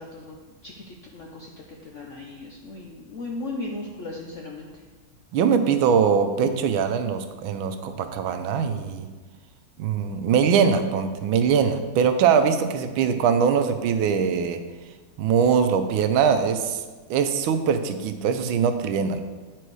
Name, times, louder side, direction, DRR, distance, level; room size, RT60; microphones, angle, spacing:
voice 1, 0.0-1.5 1.8-4.7, left 2 dB, 70° left, 0 dB, 0.7 m, -37 dB
voice 2, 5.3-9.1 9.8-14.6 15.2-16.8 17.1-19.2, right 6 dB, 85° right, 8 dB, 1.5 m, -22 dB
8.9 x 4.6 x 4.7 m, 1.3 s
omnidirectional pair, 2.2 m